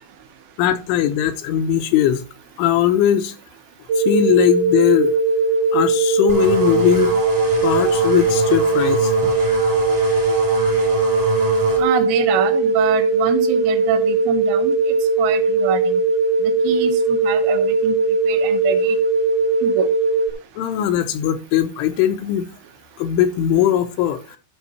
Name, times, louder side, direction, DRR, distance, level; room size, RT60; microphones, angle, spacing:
voice 1, 0.6-2.2 2.6-3.3 4.0-5.1 5.7-7.2 7.6-9.3 20.6-22.5 23.0-24.4, left 11 dB, 80° left, 3.2 m, -19 dB
sound 1, 3.9-20.3, right 3 dB, 65° right, 2.6 m, -19 dB
sound 2, 6.3-11.8, right 2 dB, 20° right, 1.0 m, -28 dB
voice 2, 11.8-14.8 15.2-16.0 16.4-18.0 18.3-19.0 19.6-19.9, right 9 dB, 85° right, 3.7 m, -25 dB
13.0 x 5.5 x 4.2 m
omnidirectional pair, 5.6 m